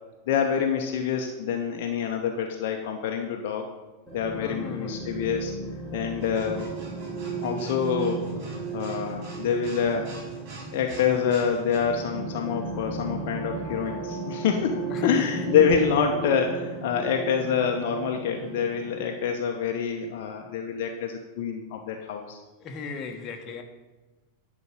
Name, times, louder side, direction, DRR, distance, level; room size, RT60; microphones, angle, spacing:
voice 1, 0.3-3.7 4.1-5.5 5.9-6.7 7.4-8.3 8.7-10.1 10.7-22.4, left 7 dB, 50° left, 3 dB, 0.9 m, -26 dB
sound 1, 4.1-19.3, right 4 dB, 25° right, 2.8 m, -35 dB
voice 2, 4.4-5.0 14.9-15.4 22.6-23.6, left 4 dB, 30° left, 4 dB, 1.3 m, -37 dB
sound 2, 6.2-11.8, right 1 dB, 45° right, 3.0 m, -44 dB
11.0 x 5.1 x 6.8 m, 1.2 s
figure-of-eight pair, 90°, 0 cm